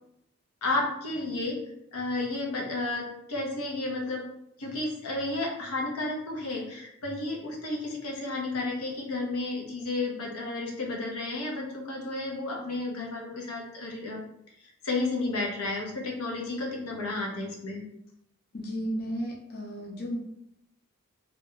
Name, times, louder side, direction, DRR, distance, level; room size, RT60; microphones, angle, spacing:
voice 1, 0.6-1.6 1.9-4.3 4.6-14.2 14.8-17.8, left 2 dB, 85° left, -1 dB, 0.7 m, -32 dB
voice 2, 18.5-20.2, equal, 50° left, -2 dB, 0.6 m, -33 dB
2.4 x 2.1 x 3.7 m, 0.80 s
head